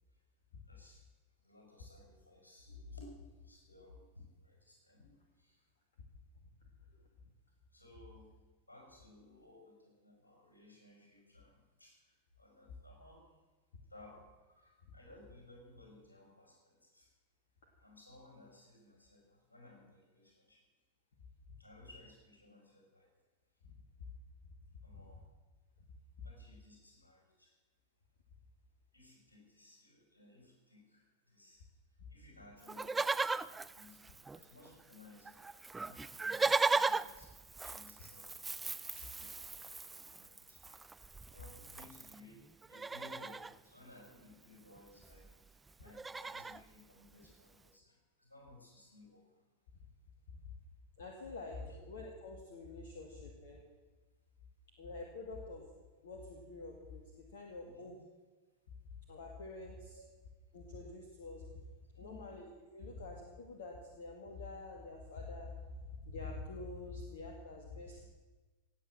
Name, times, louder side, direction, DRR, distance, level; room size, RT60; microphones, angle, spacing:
voice 1, 0.7-1.0 1.4-5.6 6.9-7.0 7.7-8.3 8.7-13.3 13.9-17.1 17.8-20.6 21.6-23.1 24.8-25.3 26.2-27.5 28.9-31.6 32.1-34.0 34.3-38.4 38.9-40.6 41.3-49.5 51.3-51.4 51.7-51.8 57.6-58.0 59.9-60.0 61.9-62.4 67.8-68.0, left 2 dB, 80° left, 1 dB, 5.3 m, -59 dB
Livestock farm animals working animals, 32.7-34.7 34.9-35.0 35.3-42.2 42.6-43.5 44.8-44.9 45.0-45.3 45.7-46.6 47.2-47.3, right 4 dB, 10° right, 0.4 m, -37 dB
voice 2, 51.0-51.6 51.9-53.6 54.8-55.6 56.0-58.0 59.1-60.0 60.5-61.6 62.0-65.5 66.0-68.0, left 3 dB, 60° left, 1 dB, 2.0 m, -47 dB
17.5 x 8.5 x 7.5 m, 1.3 s
figure-of-eight pair, 90°, 0 cm